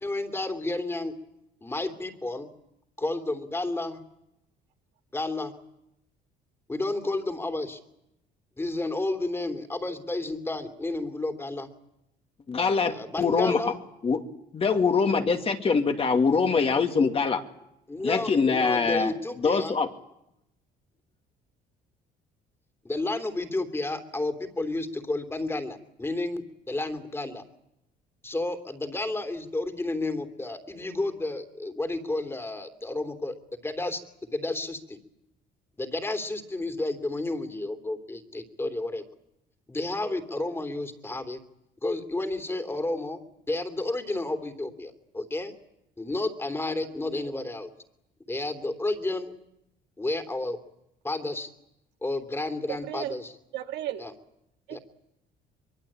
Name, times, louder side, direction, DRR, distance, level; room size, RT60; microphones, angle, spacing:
voice 1, 0.0-1.1 1.6-2.5 3.0-4.0 5.1-5.5 6.7-7.8 8.6-11.7 12.9-13.7 17.9-19.7 22.8-27.4 28.2-33.3 33.6-34.0 34.3-35.0 35.8-39.0 39.7-41.4 41.8-43.2 43.5-45.5 46.0-47.7 48.3-49.3 50.0-50.6 51.0-51.5 52.0-53.3 54.0-54.1 54.7-54.8, left 2 dB, 15° left, 8 dB, 3.1 m, -31 dB
voice 2, 12.5-13.6 14.0-14.2 14.5-17.4 18.0-19.1 19.4-19.9, left 5 dB, 35° left, 5 dB, 2.4 m, -23 dB
voice 3, 52.7-53.2 53.5-54.0 54.7-54.8, right 13 dB, 85° right, 5 dB, 2.0 m, -34 dB
23.5 x 23.0 x 8.8 m, 0.83 s
cardioid pair, 110°, 17 cm